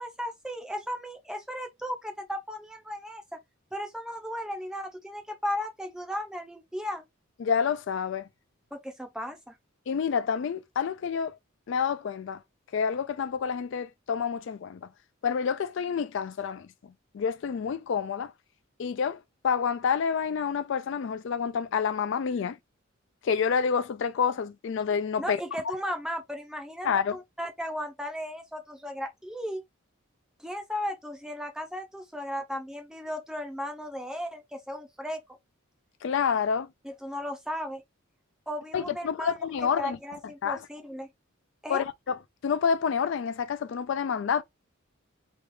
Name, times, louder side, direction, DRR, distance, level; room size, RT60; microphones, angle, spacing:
voice 1, 0.0-3.4 3.7-7.1 8.7-9.5 25.2-29.6 30.4-35.2 36.8-37.8 38.5-39.4 39.8-41.1 41.6-41.8, equal, 5° right, 0.6 m, -35 dB
voice 2, 7.4-8.3 9.9-11.4 11.7-12.4 12.7-14.9 15.2-18.3 18.8-22.6 23.2-25.4 26.8-27.2 36.0-36.7 38.7-40.0 40.4-40.6 41.7-42.1 42.4-44.4, left 6 dB, 60° left, 0.3 m, -28 dB
3.2 x 2.3 x 3.1 m
head